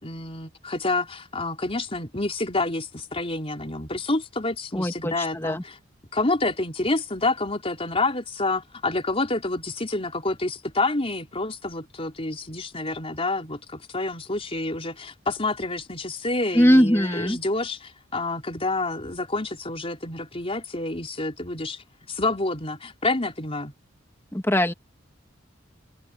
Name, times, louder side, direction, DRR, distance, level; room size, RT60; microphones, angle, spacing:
voice 1, 0.0-5.8 6.1-21.8 22.1-23.7, left 2 dB, 30° left, 4.2 m, -28 dB
voice 2, 4.7-5.6 16.5-17.4 24.3-24.7, equal, 15° left, 1.9 m, -20 dB
head